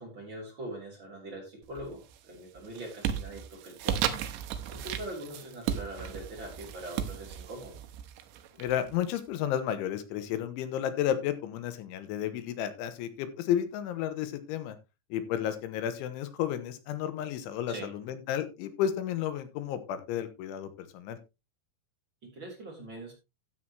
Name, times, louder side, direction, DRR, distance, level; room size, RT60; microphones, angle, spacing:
voice 1, 0.0-4.1 4.7-7.8 8.5-8.6 17.7-17.9 22.2-23.1, right 1 dB, 25° right, 0 dB, 3.9 m, -42 dB
sound 1, 1.7-2.2 2.6-9.2, right 9 dB, 80° right, 3.3 m, -35 dB
voice 2, 8.6-14.8 15.1-21.2, left 10 dB, 90° left, 11 dB, 3.5 m, -32 dB
13.5 x 8.6 x 2.9 m, 0.26 s
omnidirectional pair, 5.4 m